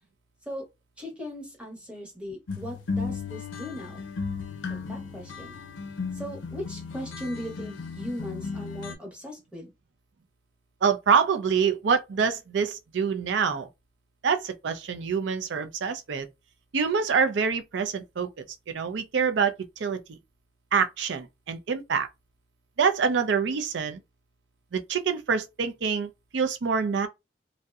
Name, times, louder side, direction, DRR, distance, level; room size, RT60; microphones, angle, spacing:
voice 1, 1.0-4.0 4.7-5.6 6.1-9.7, equal, 5° right, 0.8 m, -38 dB
sound 1, 2.5-8.9, left 4 dB, 85° left, 0.5 m, -35 dB
voice 2, 10.8-13.7 14.2-16.3 16.7-18.3 18.7-20.2 20.7-22.1 22.8-24.0 24.7-27.1, right 6 dB, 70° right, 0.4 m, -26 dB
2.6 x 2.0 x 2.3 m
head